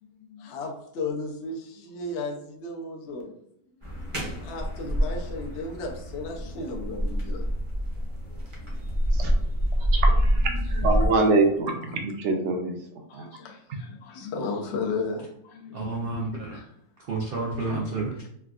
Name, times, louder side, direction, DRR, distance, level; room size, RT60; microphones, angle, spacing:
voice 1, 0.0-3.3 4.4-7.5 8.0-8.4 10.5-11.3 13.1-15.9 16.3-16.7 17.7-18.1, left 3 dB, 60° left, 0 dB, 0.7 m, -35 dB
sound 1, 3.8-11.1, equal, 30° right, 0.5 m, -26 dB
voice 2, 9.9-12.8 13.1-13.3, right 3 dB, 60° right, 2 dB, 0.8 m, -25 dB
voice 3, 15.7-16.6 17.0-18.3, right 3 dB, 85° right, -3 dB, 0.5 m, -30 dB
3.4 x 2.3 x 2.3 m, 0.72 s
omnidirectional pair, 1.6 m